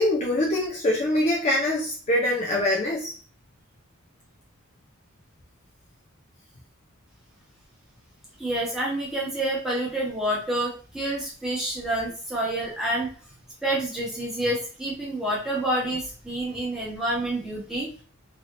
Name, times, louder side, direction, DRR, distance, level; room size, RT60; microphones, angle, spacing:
voice 1, 0.0-3.1, left 1 dB, 30° left, -3 dB, 0.5 m, -24 dB
voice 2, 8.4-13.1 13.6-17.9, right 1 dB, ahead, -6 dB, 1.1 m, -28 dB
3.3 x 2.8 x 2.5 m, 0.40 s
head